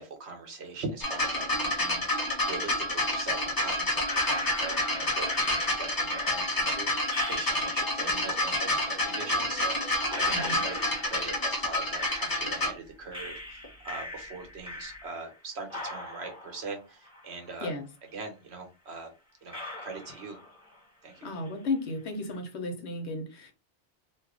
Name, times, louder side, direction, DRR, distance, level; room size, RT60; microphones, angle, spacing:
voice 1, 0.0-17.7 18.1-19.1 19.4-20.4 21.0-21.3, right 4 dB, 75° right, 4 dB, 1.2 m, -41 dB
sound 1, 1.0-12.7 13.6-13.7, left 1 dB, 20° left, 0.7 m, -29 dB
sound 2, 4.0-8.2 9.3-9.4 10.1-12.8 13.1-15.4 15.7-17.8 18.1-18.2 18.9-19.0 19.5-20.8 21.1-21.7, left 2 dB, 5° right, 1.2 m, -41 dB
voice 2, 10.3-10.6 17.6-17.9 21.2-23.5, left 2 dB, 80° left, 6 dB, 1.1 m, -34 dB
2.7 x 2.4 x 3.6 m, 0.29 s
omnidirectional pair, 1.1 m